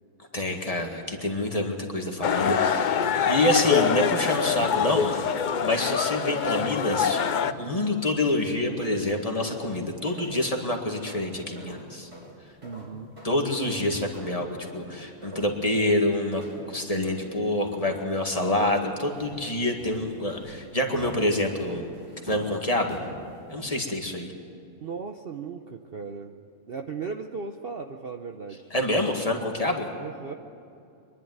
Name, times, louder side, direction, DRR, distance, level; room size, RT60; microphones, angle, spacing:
voice 1, 0.3-2.9 3.3-5.3 5.6-7.3 7.6-12.1 13.2-21.9 22.2-23.0 23.5-24.3 28.7-29.9, left 1 dB, 25° left, 2 dB, 1.9 m, -27 dB
sound 1, 2.2-7.5, left 7 dB, 65° left, 0.4 m, -25 dB
sound 2, 7.4-8.4 8.7-23.9, equal, 20° right, 2.9 m, -46 dB
voice 2, 12.6-13.1 20.7-20.9 24.8-26.4 26.7-28.7 30.0-30.3, right 5 dB, 50° right, 5 dB, 0.8 m, -37 dB
24.5 x 11.5 x 9.4 m, 2.7 s
omnidirectional pair, 1.6 m